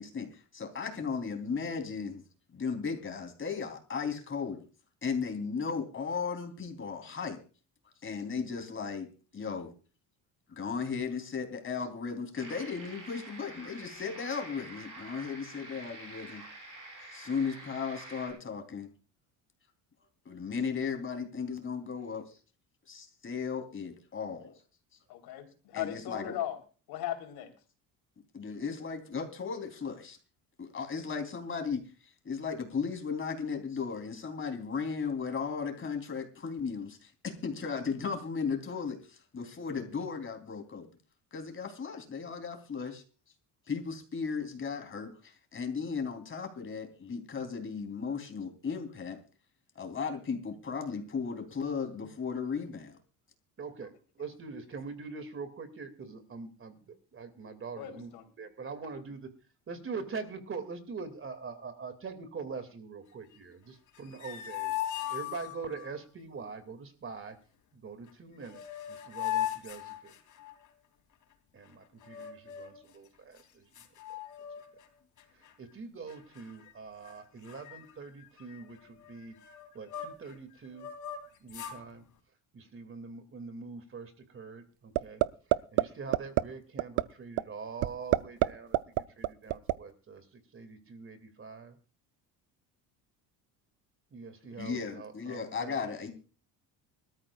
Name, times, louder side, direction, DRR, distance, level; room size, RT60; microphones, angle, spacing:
voice 1, 0.0-2.2 2.5-4.6 5.0-7.4 8.0-9.7 10.5-16.4 17.1-18.9 20.2-22.3 22.9-24.5 25.7-26.3 28.3-30.2 30.6-31.8 32.2-40.9 41.3-43.0 43.7-49.2 49.7-53.0 94.6-96.1, left 5 dB, 30° left, 3.6 m, -36 dB
sound 1, 12.4-18.3, right 2 dB, 50° right, 7.1 m, -47 dB
voice 2, 25.1-26.6 26.9-27.5 53.8-53.9 57.7-58.2, left 11 dB, 75° left, 3.8 m, -37 dB
voice 3, 53.6-58.1 58.4-59.3 59.7-67.4 67.7-68.6 68.9-70.2 71.5-73.7 75.6-79.3 79.7-80.9 81.4-82.0 82.5-85.2 85.7-91.8 94.1-95.7, right 5 dB, 35° right, 2.5 m, -43 dB
sound 2, 63.9-65.9 68.1-68.2 68.4-70.7 72.0-72.8 73.4-73.5 73.7-74.9 75.2-75.5 76.1-76.7 77.0-77.2 77.4-80.3 80.7-81.8, left 12 dB, 50° left, 3.3 m, -39 dB
sound 3, 85.0-85.3 85.5-85.8 86.1-86.4 86.8-87.0 87.4-87.5 87.8-88.5 88.7-89.7, right 17 dB, 70° right, 0.7 m, -24 dB
25.0 x 13.5 x 2.4 m
cardioid pair, 120°, 39 cm